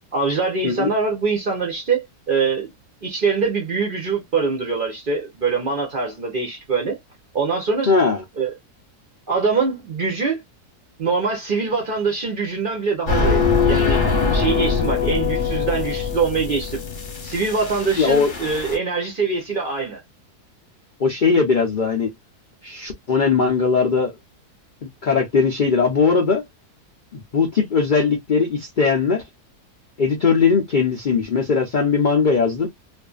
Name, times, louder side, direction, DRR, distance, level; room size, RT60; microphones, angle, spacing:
voice 1, 0.1-2.7 3.0-7.0 7.3-7.9 8.4-8.5 9.3-10.4 11.0-13.4 13.6-16.8 17.2-20.0, right 4 dB, 50° right, 0.6 m, -23 dB
voice 2, 7.8-8.2 18.0-18.3 21.0-22.1 22.6-24.1 24.8-26.4 27.1-29.2 30.0-32.7, left 5 dB, 75° left, 0.4 m, -19 dB
sound 1, 13.1-18.8, left 5 dB, 40° left, 0.8 m, -22 dB
2.5 x 2.5 x 2.3 m
omnidirectional pair, 1.7 m